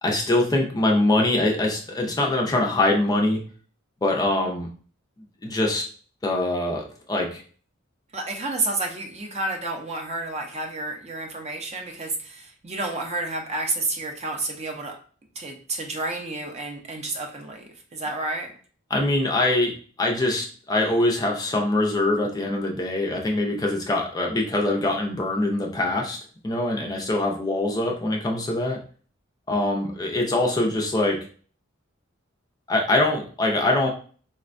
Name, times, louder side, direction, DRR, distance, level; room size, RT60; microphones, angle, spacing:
voice 1, 0.0-3.4 4.0-4.7 5.4-5.8 6.2-7.4 18.9-26.2 26.4-28.8 29.5-31.2 32.7-33.9, left 2 dB, 20° left, 0 dB, 0.5 m, -23 dB
voice 2, 8.1-14.9 15.4-18.5, right 2 dB, 30° right, 2 dB, 0.6 m, -30 dB
4.2 x 2.1 x 2.5 m, 0.42 s
head